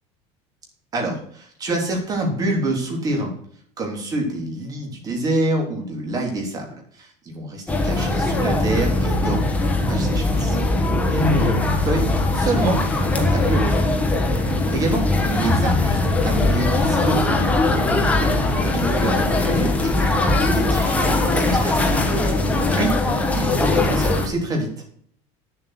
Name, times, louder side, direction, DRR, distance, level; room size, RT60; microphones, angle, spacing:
voice 1, 0.9-3.3 3.8-10.6 11.1-12.8 13.1-13.8 14.4-15.0 15.3-17.5 17.9-22.3 22.7-22.9 23.3-24.7, right 2 dB, 25° right, 1 dB, 3.4 m, -26 dB
sound 1, 7.7-24.3, left 2 dB, 10° left, 1.4 m, -20 dB
9.6 x 7.7 x 6.0 m, 0.62 s
cardioid pair, 150°, 14 cm